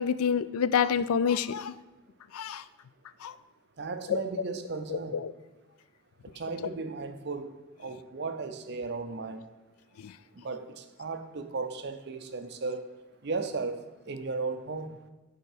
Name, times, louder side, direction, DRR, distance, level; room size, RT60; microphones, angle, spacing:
voice 1, 0.0-1.7 2.3-2.6 3.2-3.3 4.1-4.2 4.9-5.3 10.0-10.1, left 7 dB, 80° left, 15 dB, 0.4 m, -27 dB
voice 2, 3.8-5.2 6.4-7.5 7.8-9.4 10.4-12.9 13.2-14.9, right 4 dB, 50° right, 8 dB, 0.6 m, -35 dB
9.1 x 4.5 x 4.9 m, 1.1 s
head